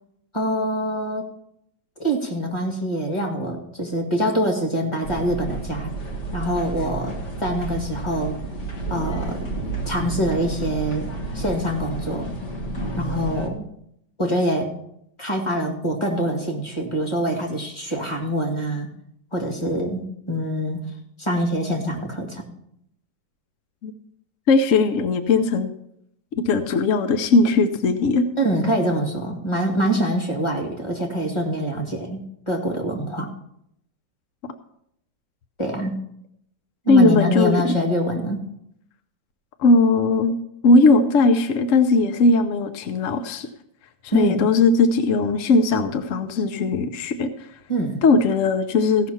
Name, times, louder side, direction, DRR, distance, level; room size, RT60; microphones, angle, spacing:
voice 1, 0.3-1.3 2.0-5.9 6.3-8.4 8.9-9.5 9.9-12.3 13.0-13.6 14.2-14.7 15.2-18.9 19.3-20.8 21.2-22.4 28.4-33.3 35.6-36.0 36.9-38.4 44.1-44.5 47.7-48.0, right 1 dB, 15° left, 1 dB, 1.8 m, -25 dB
sound 1, 5.0-13.5, right 2 dB, 40° left, 1.7 m, -31 dB
voice 2, 24.5-25.7 26.4-28.2 36.9-37.7 39.6-40.3 40.6-43.5 44.1-47.3 48.0-49.1, left 3 dB, 65° left, 9 dB, 0.8 m, -18 dB
16.0 x 5.9 x 5.7 m, 0.74 s
omnidirectional pair, 2.1 m